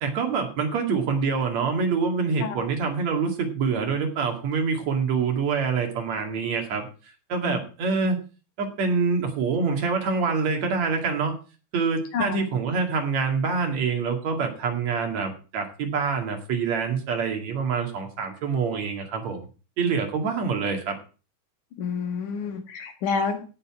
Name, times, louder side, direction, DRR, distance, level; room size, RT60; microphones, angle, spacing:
voice 1, 0.0-6.9 7.3-8.2 8.6-11.3 11.7-19.5 19.8-21.0, right 5 dB, 65° right, 3 dB, 3.3 m, -26 dB
voice 2, 21.8-23.4, left 5 dB, 80° left, 5 dB, 3.3 m, -29 dB
16.5 x 6.9 x 4.8 m, 0.35 s
omnidirectional pair, 3.5 m